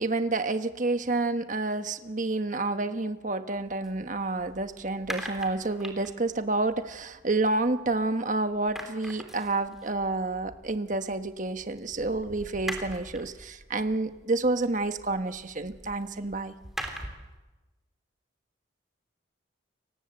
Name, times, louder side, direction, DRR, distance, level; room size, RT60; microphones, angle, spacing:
voice 1, 0.0-16.5, right 2 dB, 40° right, 9 dB, 1.3 m, -29 dB
sound 1, 3.6-8.2 8.5-17.4, equal, ahead, 3.4 m, -43 dB
30.0 x 24.0 x 8.0 m, 1.1 s
head